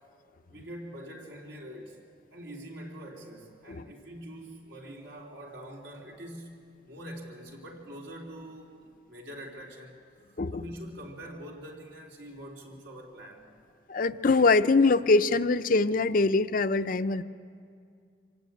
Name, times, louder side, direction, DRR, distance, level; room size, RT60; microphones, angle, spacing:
voice 1, 0.5-2.0 2.3-10.0 10.3-13.5, equal, 80° right, -1 dB, 3.6 m, -44 dB
voice 2, 13.9-17.2, left 3 dB, 50° left, 11 dB, 0.6 m, -23 dB
25.5 x 16.5 x 8.9 m, 2.3 s
head